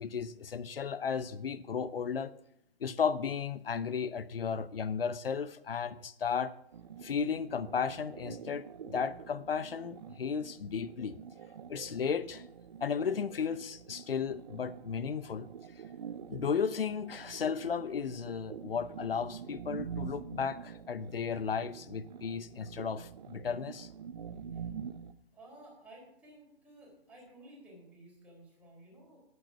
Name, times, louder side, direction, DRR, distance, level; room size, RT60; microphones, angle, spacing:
voice 1, 0.0-2.3 2.8-6.5 7.0-11.2 11.7-12.4 12.8-15.5 16.3-23.9, left 6 dB, 65° left, 15 dB, 0.8 m, -34 dB
sound 1, 6.7-25.1, right 7 dB, 45° right, 0.6 m, -46 dB
voice 2, 25.3-29.2, right 1 dB, 5° right, -4 dB, 3.7 m, -55 dB
8.6 x 8.5 x 5.8 m, 0.74 s
figure-of-eight pair, 135°, 31 cm